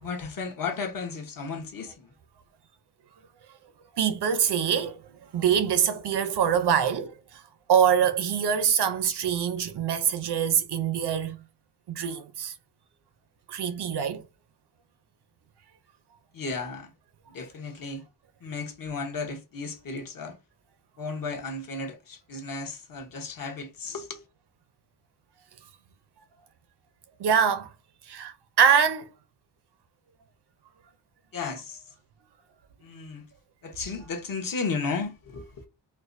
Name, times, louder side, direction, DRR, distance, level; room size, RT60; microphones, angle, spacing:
voice 1, 0.0-2.1 16.3-16.9 17.3-18.0 18.4-20.4 21.0-24.2 31.3-31.8 32.8-33.3 33.6-35.6, left 4 dB, 50° left, 1.0 m, -34 dB
voice 2, 4.0-5.0 5.3-7.1 7.7-11.4 11.9-12.5 13.5-14.2 27.2-27.7 28.1-29.1, right 8 dB, 65° right, 0.6 m, -24 dB
4.4 x 2.2 x 2.5 m
wide cardioid pair, 155°, 43 cm